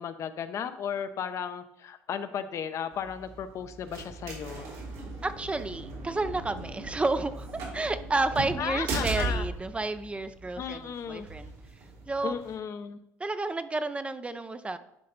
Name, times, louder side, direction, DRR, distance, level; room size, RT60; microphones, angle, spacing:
voice 1, 0.0-4.7 8.6-9.4 10.6-11.3 12.2-13.0, left 8 dB, 50° left, 10 dB, 0.7 m, -35 dB
sound 1, 2.9-12.5, right 2 dB, 75° right, 3.0 m, -38 dB
voice 2, 5.2-11.5 12.1-12.4 13.2-14.8, right 3 dB, 20° right, 11 dB, 0.5 m, -31 dB
10.5 x 4.2 x 4.0 m, 0.80 s
supercardioid pair, 75°, 6 cm